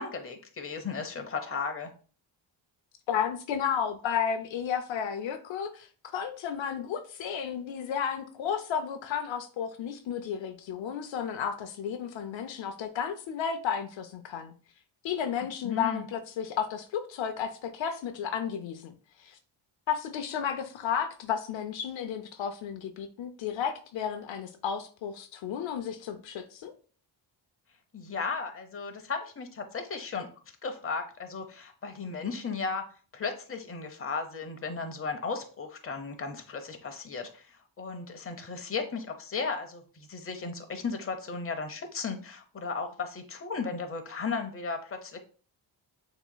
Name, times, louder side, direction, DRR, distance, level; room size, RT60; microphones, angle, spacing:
voice 1, 0.0-1.9 15.6-16.0 27.9-30.3 30.6-32.9 33.1-45.2, left 4 dB, 30° left, 0.8 m, -35 dB
voice 2, 3.1-5.9 6.1-14.5 15.0-18.9 19.2-19.4 19.9-26.7, left 8 dB, 70° left, 0.7 m, -33 dB
6.8 x 3.0 x 2.2 m
cardioid pair, 95°, 47 cm